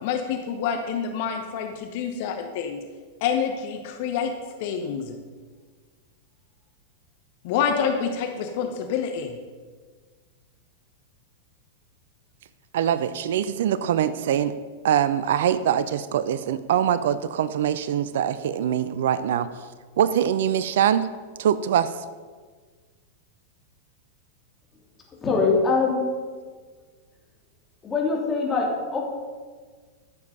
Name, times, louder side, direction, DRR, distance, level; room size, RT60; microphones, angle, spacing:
voice 1, 0.0-2.8 3.2-4.3 4.6-5.2 7.4-9.4, left 7 dB, 50° left, 5 dB, 0.9 m, -27 dB
voice 2, 12.7-14.5 14.8-19.5 20.0-21.1 21.4-21.9, right 9 dB, 60° right, 15 dB, 0.5 m, -23 dB
voice 3, 25.2-26.0 27.8-29.0, left 4 dB, 20° left, -2 dB, 3.0 m, -23 dB
13.0 x 7.1 x 5.3 m, 1.5 s
figure-of-eight pair, 95°, 0 cm